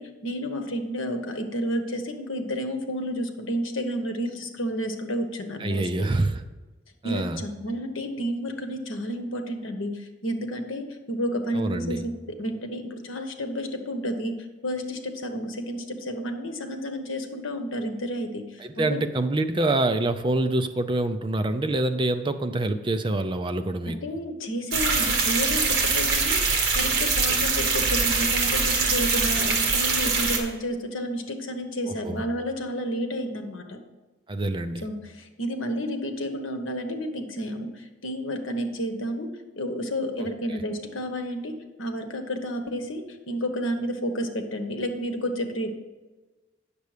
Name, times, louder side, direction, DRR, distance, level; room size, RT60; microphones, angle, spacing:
voice 1, 0.0-6.1 7.0-14.4 14.6-19.0 23.9-33.8 34.8-39.3 39.6-45.7, equal, 85° left, 6 dB, 1.1 m, -31 dB
voice 2, 5.6-6.4 7.0-7.4 11.5-12.0 18.6-24.0 27.6-27.7 32.0-32.2 34.3-34.8 40.2-40.3, right 2 dB, 25° right, 9 dB, 0.4 m, -26 dB
sound 1, 24.7-30.4, right 4 dB, 55° right, 1.5 m, -23 dB
9.2 x 6.8 x 5.0 m, 1.2 s
head